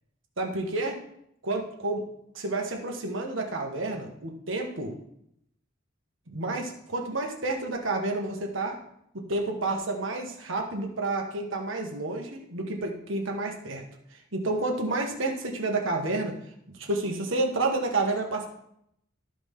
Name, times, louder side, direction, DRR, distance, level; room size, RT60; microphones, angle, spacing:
voice 1, 0.4-1.0 1.4-2.0 2.3-4.9 6.3-8.8 9.1-13.8 14.3-16.3 16.8-18.5, right 2 dB, 70° right, 1 dB, 1.7 m, -30 dB
13.5 x 5.1 x 3.8 m, 0.75 s
head